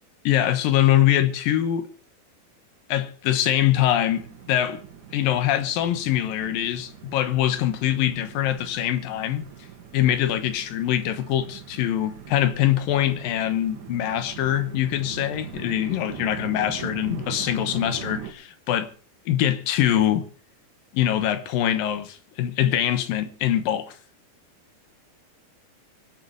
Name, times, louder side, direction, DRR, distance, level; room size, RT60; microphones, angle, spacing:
voice 1, 0.2-1.9 2.9-4.8 5.1-9.4 9.9-18.9 19.3-20.3 20.9-24.0, left 12 dB, 85° left, 3.0 m, -23 dB
sound 1, 4.1-18.3, right 8 dB, 65° right, 3.1 m, -41 dB
24.5 x 8.2 x 4.7 m
omnidirectional pair, 4.0 m